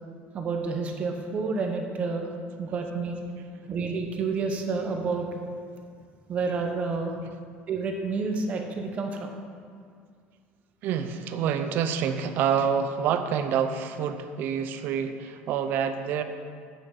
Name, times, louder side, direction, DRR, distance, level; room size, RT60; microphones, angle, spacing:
voice 1, 0.3-2.3 2.6-3.2 3.7-5.4 6.3-7.1 7.7-9.4, right 4 dB, 35° right, 3 dB, 0.9 m, -29 dB
voice 2, 10.8-16.2, right 7 dB, 55° right, 9 dB, 0.6 m, -27 dB
8.8 x 5.9 x 4.9 m, 2.1 s
cardioid pair, 155°, 4 cm